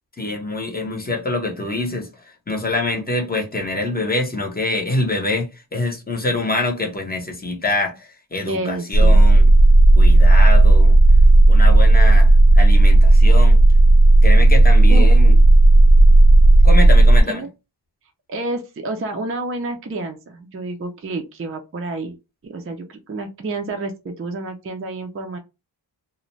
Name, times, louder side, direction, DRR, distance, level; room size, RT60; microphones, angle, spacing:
voice 1, 0.2-9.5 10.0-11.0 11.5-13.6 14.2-15.3 16.6-17.4, left 2 dB, 20° left, 0.7 m, -25 dB
voice 2, 8.4-9.2 14.9-15.1 17.3-17.5 18.3-22.2 22.4-25.4, right 2 dB, 30° right, 0.4 m, -29 dB
sound 1, 8.9-17.2, right 2 dB, 55° left, 0.6 m, -10 dB
2.5 x 2.1 x 3.0 m
wide cardioid pair, 135°, 44 cm